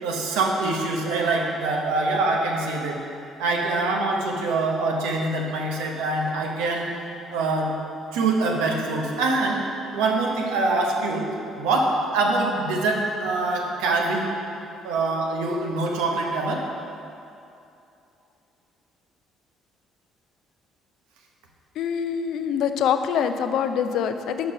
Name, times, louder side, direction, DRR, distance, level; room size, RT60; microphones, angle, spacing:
voice 1, 0.0-3.0 3.4-6.9 7.3-7.7 8.1-9.6 9.9-11.3 11.6-14.3 14.8-16.7, right 3 dB, 90° right, 0 dB, 0.9 m, -24 dB
voice 2, 21.8-24.5, left 8 dB, 70° left, 8 dB, 0.4 m, -24 dB
5.8 x 5.2 x 5.4 m, 2.7 s
supercardioid pair, 70°, 0 cm